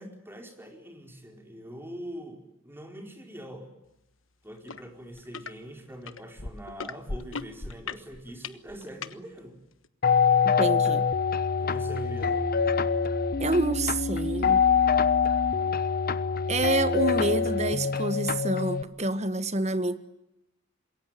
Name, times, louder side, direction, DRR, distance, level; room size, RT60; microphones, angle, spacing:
voice 1, 0.0-3.7 4.4-9.6 11.6-12.5, equal, 10° right, 3 dB, 4.7 m, -43 dB
sound 1, 4.7-4.8 5.1-5.5 6.1-9.1 9.8-9.9, left 4 dB, 70° left, 1.3 m, -37 dB
sound 2, 10.0-18.8, left 6 dB, 45° left, 1.1 m, -25 dB
voice 2, 10.6-11.0 13.4-14.6 16.5-20.0, right 2 dB, 35° right, 11 dB, 1.5 m, -27 dB
27.0 x 22.5 x 9.2 m, 0.88 s
head